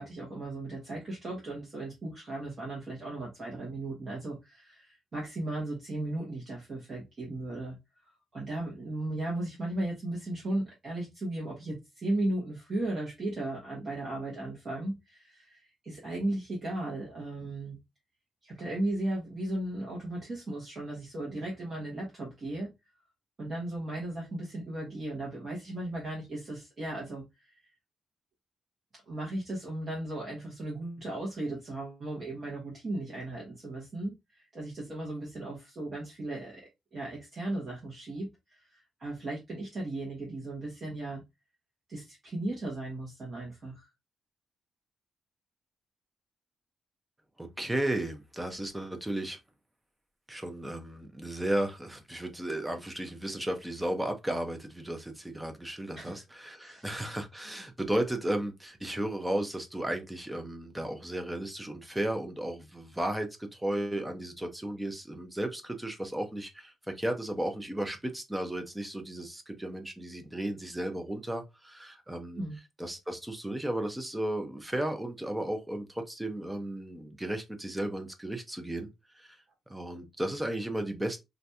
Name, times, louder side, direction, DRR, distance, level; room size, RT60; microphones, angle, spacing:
voice 1, 0.0-7.8 8.0-17.8 18.4-22.7 23.4-27.6 28.9-36.6 36.9-41.2 41.9-43.9 55.9-56.2 56.6-56.9 72.4-72.6, right 1 dB, 30° right, 1.0 m, -36 dB
voice 2, 47.4-49.4 50.3-72.4 72.8-78.9 79.1-79.4 79.7-81.2, right 1 dB, 5° right, 0.5 m, -34 dB
2.7 x 2.5 x 3.3 m
wide cardioid pair, 175°, 0 cm